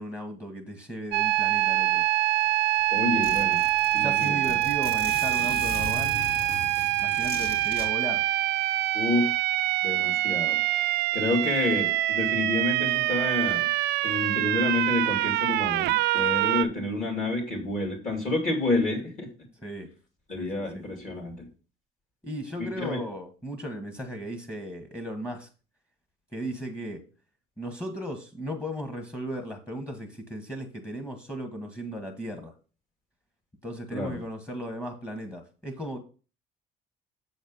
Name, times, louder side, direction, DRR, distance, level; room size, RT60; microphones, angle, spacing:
voice 1, 0.0-2.0 3.1-3.6 4.0-6.3 7.0-8.3 19.6-19.9 20.4-20.8 22.2-25.5 26.3-27.1 27.6-32.5 33.6-36.0, equal, 15° left, 6 dB, 1.4 m, -36 dB
sound 1, 1.1-16.7, right 15 dB, 75° right, 0.4 m, -25 dB
Zipper (clothing), 2.4-2.5 2.8-2.9 3.2-7.9, left 2 dB, 65° left, 2.8 m, -38 dB
voice 2, 2.9-3.6 3.9-4.5 8.9-9.4 9.8-10.6 11.1-13.7 14.0-19.3 20.3-21.5 22.6-23.0 33.9-34.1, left 2 dB, 45° left, 2 dB, 2.7 m, -29 dB
7.2 x 4.3 x 5.4 m, 0.36 s
cardioid pair, 110°, 17 cm